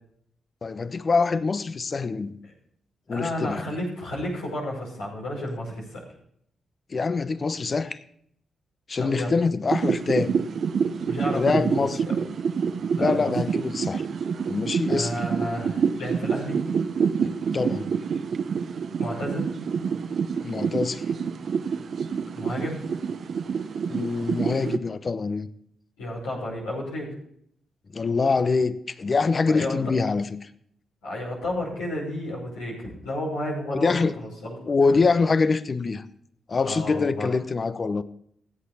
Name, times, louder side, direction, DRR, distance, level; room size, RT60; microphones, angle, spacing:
voice 1, 0.6-2.4 3.1-3.8 6.9-8.0 8.9-10.4 11.3-12.0 12.9-14.0 14.4-15.2 17.2-17.9 20.4-21.0 23.9-25.5 27.9-30.5 33.7-34.1 34.7-36.1 36.5-38.0, left 4 dB, 45° left, 0.8 m, -25 dB
voice 2, 3.1-6.0 9.0-9.3 11.0-12.2 12.9-13.3 14.9-16.6 19.0-19.5 22.3-22.8 26.0-27.1 29.4-29.8 31.0-34.6 36.7-37.3, left 1 dB, 90° left, 5.7 m, -32 dB
sound 1, 9.7-24.8, right 6 dB, 65° right, 0.7 m, -27 dB
16.0 x 8.6 x 4.2 m
hypercardioid pair, 40°, 0 cm